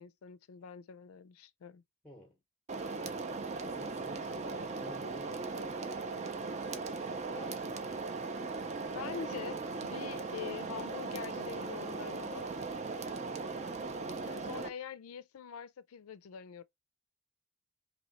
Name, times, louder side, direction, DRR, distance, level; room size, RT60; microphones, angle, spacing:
voice 1, 0.0-1.8 8.9-12.5 14.3-16.6, left 8 dB, 90° left, 0.4 m, -45 dB
voice 2, 2.0-2.4 3.5-8.2, equal, 5° left, 0.7 m, -53 dB
sound 1, 2.7-14.7, right 3 dB, 30° right, 0.4 m, -38 dB
3.0 x 2.7 x 4.0 m
head